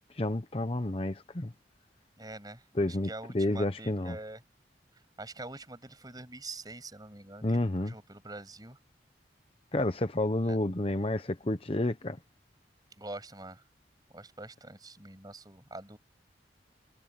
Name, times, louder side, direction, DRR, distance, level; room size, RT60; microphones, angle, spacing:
voice 1, 0.1-1.5 2.7-4.2 7.4-7.9 9.7-12.2, left 1 dB, 30° left, 0.9 m, -30 dB
voice 2, 2.2-4.4 5.2-8.8 10.5-10.6 13.0-13.6 14.1-16.0, right 2 dB, 20° right, 6.8 m, -45 dB
head